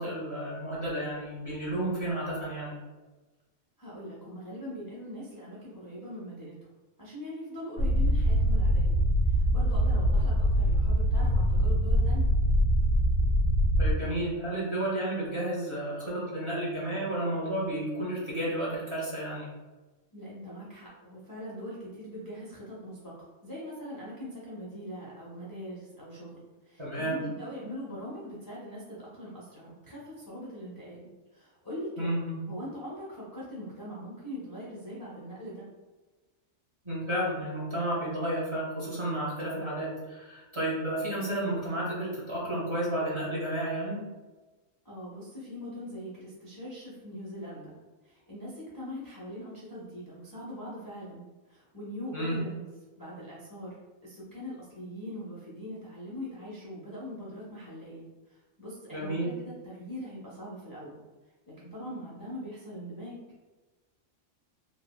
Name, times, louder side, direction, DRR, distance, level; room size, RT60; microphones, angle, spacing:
voice 1, 0.0-2.8 13.8-19.5 26.8-27.2 32.0-32.4 36.8-44.1 52.1-52.4 58.9-59.3, right 1 dB, 30° right, -8 dB, 0.6 m, -32 dB
voice 2, 3.8-6.5 7.0-9.0 9.3-12.3 20.1-35.6 44.8-47.7 48.0-52.6 53.0-53.7 54.0-61.0 61.6-63.2, equal, 35° left, -8 dB, 0.3 m, -42 dB
sound 1, 7.8-13.9, equal, 85° left, 1.2 m, -24 dB
3.2 x 2.1 x 2.2 m, 1.2 s
omnidirectional pair, 1.3 m